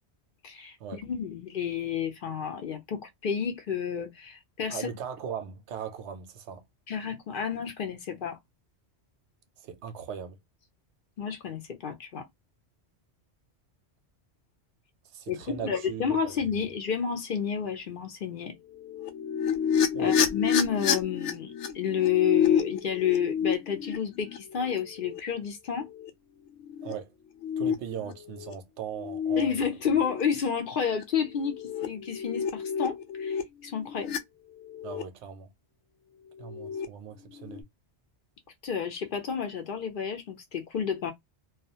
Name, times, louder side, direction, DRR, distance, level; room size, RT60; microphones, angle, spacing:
voice 1, 0.4-4.9 6.9-8.4 11.2-12.3 15.3-18.5 20.0-25.9 29.4-34.2 38.6-41.1, left 7 dB, 60° left, 0.7 m, -30 dB
voice 2, 4.7-6.6 9.6-10.4 15.0-16.4 19.9-20.2 26.8-27.1 27.6-29.7 34.8-35.5 36.4-37.6, right 7 dB, 85° right, 0.9 m, -39 dB
sound 1, 18.8-25.2 25.9-26.1 26.5-26.9 27.4-28.5 29.0-29.4 29.9-30.2 30.9-31.0 31.4-34.2 34.6-35.0 36.4-36.9 37.2-37.6, left 7 dB, 85° left, 0.9 m, -30 dB
2.3 x 2.2 x 2.7 m
omnidirectional pair, 1.2 m